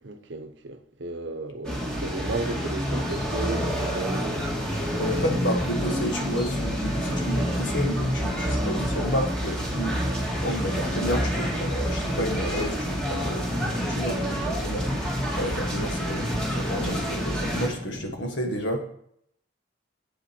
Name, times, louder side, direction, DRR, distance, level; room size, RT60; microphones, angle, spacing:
voice 1, 0.0-4.5 8.2-8.6, right 2 dB, 60° right, 0.8 m, -34 dB
sound 1, 1.6-17.7, equal, 5° left, 1.8 m, -28 dB
voice 2, 5.0-14.9 15.3-18.8, equal, 60° left, 1.5 m, -31 dB
sound 2, 10.6-18.1, left 1 dB, 30° left, 2.1 m, -41 dB
7.6 x 7.4 x 4.4 m
head